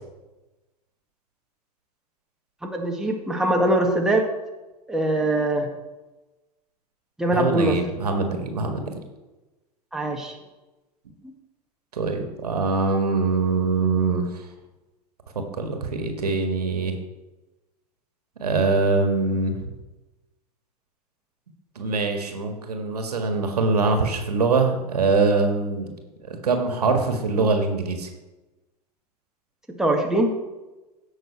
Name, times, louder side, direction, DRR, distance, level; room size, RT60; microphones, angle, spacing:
voice 1, 2.6-4.3 4.9-5.7 7.2-7.8 9.9-10.4 11.2-11.3 29.7-30.4, right 1 dB, 5° right, 0 dB, 1.8 m, -22 dB
voice 2, 7.3-9.0 11.9-14.5 15.6-16.9 18.4-19.7 21.8-25.9 26.3-28.1, right 4 dB, 75° right, 5 dB, 1.8 m, -23 dB
16.5 x 6.3 x 4.5 m, 1.1 s
figure-of-eight pair, 85°, 20 cm